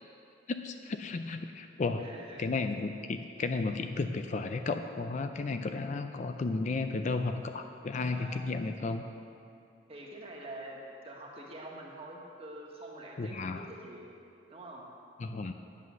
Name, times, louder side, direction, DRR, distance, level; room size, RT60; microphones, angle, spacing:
voice 1, 0.5-2.1 2.4-9.0 13.2-13.7 15.2-15.5, left 3 dB, 40° left, 7 dB, 0.4 m, -33 dB
voice 2, 2.0-2.5 8.1-8.4 9.9-10.8 11.0-14.1 14.5-14.8, right 1 dB, 30° right, -2 dB, 1.5 m, -46 dB
9.3 x 8.3 x 6.3 m, 2.6 s
head